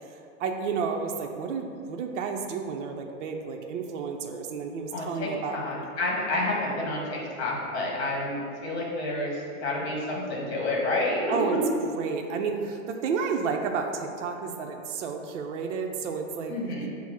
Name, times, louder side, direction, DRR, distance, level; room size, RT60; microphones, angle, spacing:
voice 1, 0.4-5.6 11.3-11.6 12.0-16.5, right 5 dB, 60° right, 3 dB, 0.5 m, -31 dB
voice 2, 4.9-11.6 16.5-16.9, left 1 dB, 50° left, -3 dB, 1.3 m, -29 dB
5.5 x 2.0 x 4.7 m, 2.5 s
hypercardioid pair, 170°, 41 cm